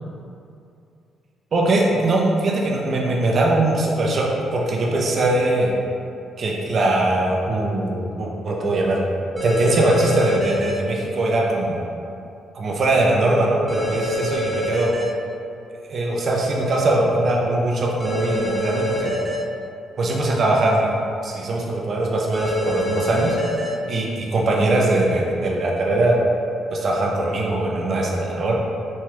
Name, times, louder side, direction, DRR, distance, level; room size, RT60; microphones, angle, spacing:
voice 1, 1.5-4.3 4.5-5.7 6.4-9.0 9.4-11.8 12.5-14.9 15.9-19.1 20.0-21.0 21.2-23.4 23.9-26.2 26.7-28.5, right 2 dB, 50° right, -2 dB, 0.5 m, -21 dB
sound 1, 9.4-10.7 13.7-15.0 18.0-19.4 22.3-23.7, equal, 10° right, 0.7 m, -26 dB
3.1 x 2.3 x 3.0 m, 2.6 s
cardioid pair, 90°, 0 cm